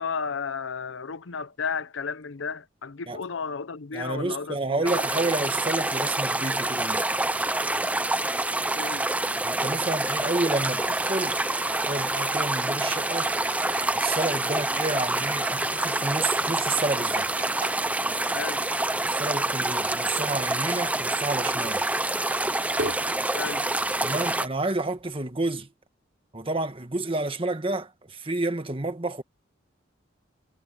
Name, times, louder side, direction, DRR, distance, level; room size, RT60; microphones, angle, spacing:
voice 1, 0.0-5.1 8.7-9.1 18.3-18.6 23.3-23.7, left 5 dB, 80° left, 0.7 m, -33 dB
voice 2, 3.9-7.0 9.4-11.4 11.9-13.3 13.9-17.3 19.1-21.8 24.0-25.7 26.3-29.2, right 2 dB, 30° right, 1.6 m, -30 dB
sound 1, 4.9-24.5, right 2 dB, 5° right, 0.6 m, -27 dB
sound 2, 9.4-17.4, right 6 dB, 75° right, 4.6 m, -44 dB
sound 3, 22.2-25.6, right 2 dB, 55° right, 3.6 m, -44 dB
head